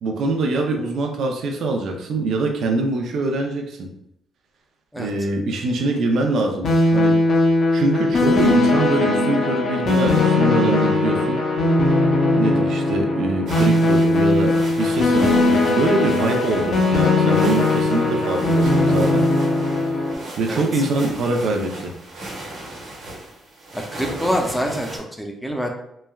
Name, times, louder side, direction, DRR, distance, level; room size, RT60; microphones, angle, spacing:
voice 1, 0.0-3.9 5.0-7.2 7.7-11.4 12.4-19.3 19.8-20.0 20.4-21.9, right 2 dB, 70° right, 2 dB, 0.4 m, -23 dB
sound 1, 6.6-20.1, left 2 dB, 60° left, 0.6 m, -19 dB
sound 2, 13.5-25.0, right 1 dB, 90° right, 1.0 m, -36 dB
voice 2, 23.7-24.9 25.2-25.7, equal, ahead, 1 dB, 0.5 m, -25 dB
3.1 x 2.2 x 2.2 m, 0.77 s
cardioid pair, 90°, 0 cm